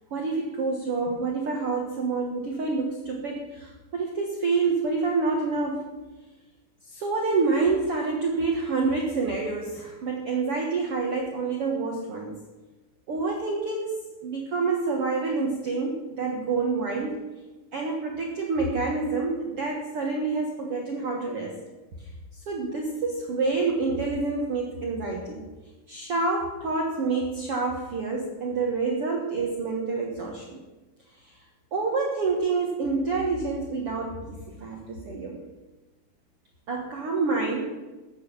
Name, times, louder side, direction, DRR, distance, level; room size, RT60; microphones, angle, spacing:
voice 1, 0.1-5.9 6.9-12.3 13.1-17.2 17.7-21.6 22.3-25.4 25.9-30.6 31.7-35.4 36.7-37.6, right 4 dB, 55° right, 0 dB, 1.7 m, -27 dB
14.0 x 8.2 x 7.3 m, 1.2 s
omnidirectional pair, 4.3 m